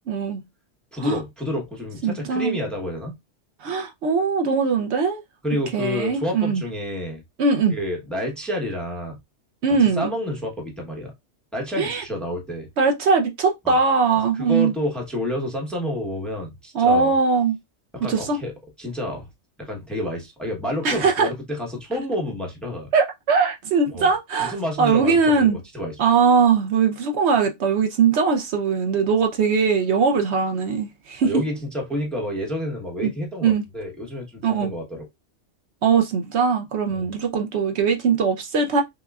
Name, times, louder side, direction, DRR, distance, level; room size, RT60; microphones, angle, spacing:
voice 1, 0.1-0.4 1.0-1.2 2.0-2.6 3.6-5.2 5.7-6.6 7.4-7.8 9.6-10.1 11.8-12.0 12.8-14.7 16.7-17.6 18.1-18.4 20.8-21.3 22.9-25.6 26.0-31.3 33.0-33.1 33.4-33.6 34.4-34.7 35.8-38.8, right 5 dB, 70° right, 0.9 m, -20 dB
voice 2, 0.9-3.1 5.4-7.2 7.7-9.2 9.9-11.1 11.5-12.7 13.6-13.8 14.4-17.1 17.9-18.5 18.8-19.3 19.6-22.9 23.9-24.1 24.4-26.0 31.2-35.1 36.9-37.1, left 1 dB, ahead, 0.9 m, -29 dB
5.9 x 2.2 x 2.3 m
omnidirectional pair, 1.2 m